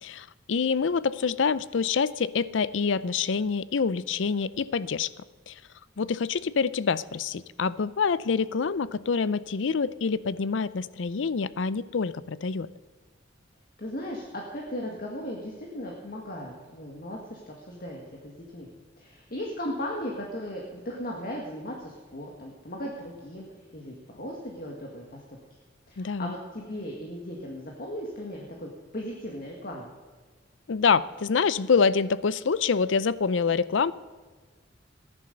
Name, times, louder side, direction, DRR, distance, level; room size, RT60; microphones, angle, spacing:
voice 1, 0.0-5.1 5.5-5.6 6.0-12.7 26.0-26.3 30.7-33.9, left 5 dB, 80° left, 18 dB, 0.5 m, -26 dB
voice 2, 13.8-18.7 19.0-23.5 23.7-25.2 25.9-29.9, equal, 50° left, -1 dB, 1.9 m, -37 dB
14.5 x 11.0 x 6.7 m, 1.4 s
head